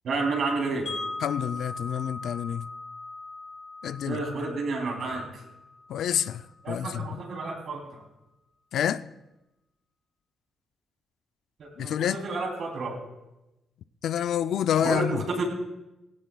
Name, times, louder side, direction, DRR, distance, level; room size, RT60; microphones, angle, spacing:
voice 1, 0.0-0.9 4.0-5.3 6.6-8.0 11.6-13.0 14.8-15.4, right 3 dB, 60° right, 3.0 m, -30 dB
Wind chime, 0.9-6.8, left 3 dB, 50° left, 4.2 m, -40 dB
voice 2, 1.2-2.7 3.8-4.2 5.9-7.2 8.7-9.0 11.8-12.2 14.0-15.2, left 9 dB, 75° left, 0.4 m, -28 dB
17.0 x 17.0 x 2.3 m
cardioid pair, 125°, 0 cm